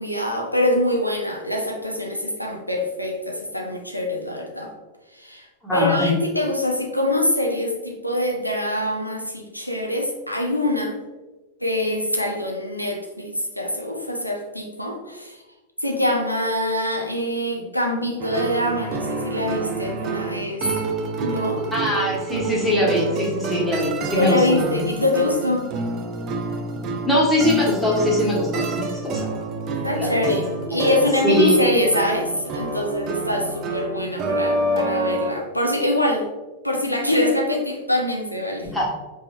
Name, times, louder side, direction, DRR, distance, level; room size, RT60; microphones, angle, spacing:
voice 1, 0.0-4.7 5.1-5.5 5.7-11.0 11.6-15.4 15.8-20.7 21.2-21.7 24.2-25.7 29.8-36.3 36.6-38.7, left 1 dB, 90° left, 0 dB, 0.6 m, -24 dB
voice 2, 5.6-6.2 21.7-24.7 27.0-29.2 29.9-30.1 30.7-31.0 31.2-31.6 38.7-38.9, left 1 dB, 5° left, -5 dB, 1.5 m, -21 dB
sound 1, 18.2-35.3, right 2 dB, 35° right, 0.6 m, -28 dB
5.0 x 3.5 x 2.8 m, 1.2 s
figure-of-eight pair, 90°, 0 cm